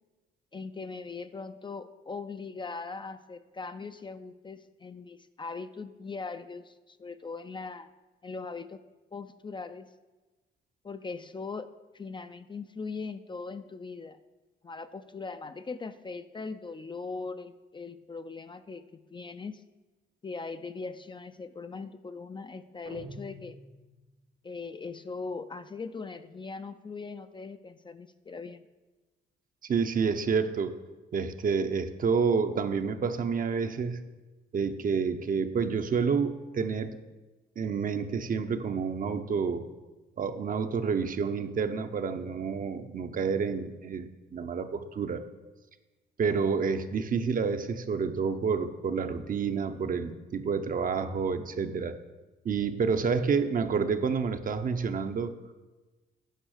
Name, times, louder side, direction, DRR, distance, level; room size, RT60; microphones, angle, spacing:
voice 1, 0.5-7.9 8.2-8.8 9.1-9.9 10.8-14.2 14.6-19.6 20.2-23.6 24.4-28.6, left 4 dB, 25° left, 10 dB, 0.4 m, -40 dB
sound 1, 22.9-24.3, right 1 dB, 75° right, 1.1 m, -47 dB
voice 2, 29.6-30.7 31.1-34.0 34.5-37.0 37.6-39.7 40.2-45.2 46.2-52.0 52.4-55.3, right 5 dB, 45° right, 9 dB, 0.7 m, -29 dB
9.0 x 5.5 x 6.5 m, 1.2 s
cardioid pair, 90°, 20 cm